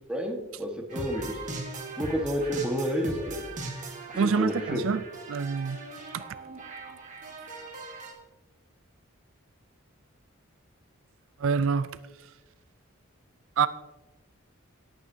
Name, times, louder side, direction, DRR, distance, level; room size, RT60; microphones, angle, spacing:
voice 1, 0.1-1.4 2.0-3.4 4.1-4.8 6.0-6.1, equal, 5° right, 1 dB, 1.3 m, -30 dB
sound 1, 0.9-8.1, right 2 dB, 35° right, 1.6 m, -39 dB
voice 2, 4.2-5.0 5.3-5.8 6.1-6.2 11.4-11.9 13.6-13.7, right 6 dB, 70° right, 14 dB, 0.4 m, -26 dB
18.0 x 9.0 x 2.7 m, 1.2 s
head